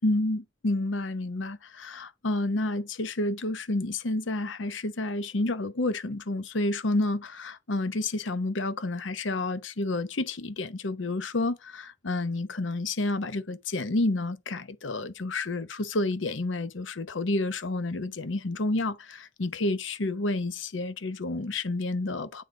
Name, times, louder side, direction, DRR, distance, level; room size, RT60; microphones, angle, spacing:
voice 1, 0.0-22.4, left 2 dB, 75° left, 0.9 m, -30 dB
8.5 x 3.9 x 3.8 m
head